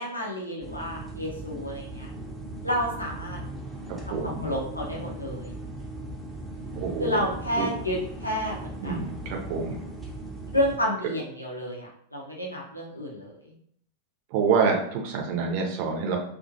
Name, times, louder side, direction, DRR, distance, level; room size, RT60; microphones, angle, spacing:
voice 1, 0.0-2.1 2.6-3.4 4.1-5.5 7.0-9.0 10.5-13.3, equal, 85° left, -2 dB, 0.6 m, -30 dB
sound 1, 0.6-10.8, right 1 dB, 5° right, 0.6 m, -38 dB
voice 2, 4.1-4.5 6.8-7.2 7.6-7.7 8.8-9.8 14.3-16.2, right 5 dB, 45° right, 1 dB, 0.5 m, -27 dB
2.4 x 2.2 x 2.6 m, 0.63 s
figure-of-eight pair, 90°, 0 cm